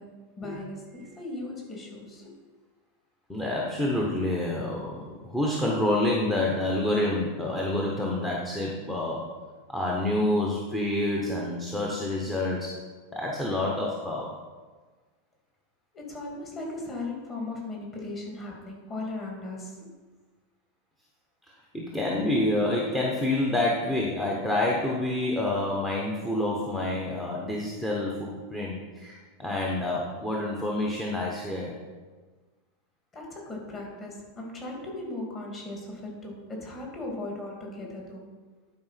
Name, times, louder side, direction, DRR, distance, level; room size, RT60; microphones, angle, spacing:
voice 1, 0.0-2.3 15.9-19.9 33.1-38.2, left 2 dB, 25° left, -1 dB, 2.5 m, -37 dB
voice 2, 3.3-9.3 9.7-12.7 13.1-14.3 21.7-31.8, left 1 dB, 5° left, -3 dB, 1.1 m, -28 dB
11.0 x 5.0 x 5.8 m, 1.4 s
supercardioid pair, 150°, 0 cm